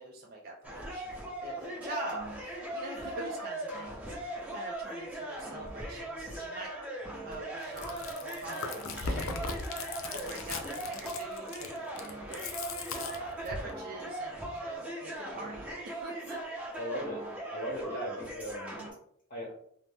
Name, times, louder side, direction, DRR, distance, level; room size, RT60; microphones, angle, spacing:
voice 1, 0.0-6.7 7.2-12.7 13.0-16.4, right 1 dB, 50° right, -1 dB, 0.4 m, -44 dB
sound 1, 0.6-18.9, right 1 dB, 5° right, 0.8 m, -39 dB
Chewing mastication, 7.6-13.7, left 4 dB, 85° left, 0.4 m, -38 dB
voice 2, 16.8-18.8 19.3-19.5, equal, 45° left, -6 dB, 0.8 m, -38 dB
2.6 x 2.0 x 3.3 m, 0.65 s
head